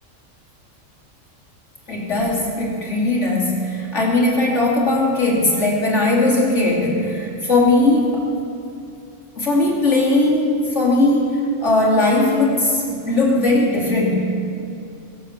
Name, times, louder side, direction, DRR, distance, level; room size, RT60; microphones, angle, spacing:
voice 1, 1.9-8.2 9.4-14.3, left 2 dB, 65° left, -4 dB, 3.4 m, -18 dB
23.0 x 7.9 x 7.5 m, 2.7 s
omnidirectional pair, 1.3 m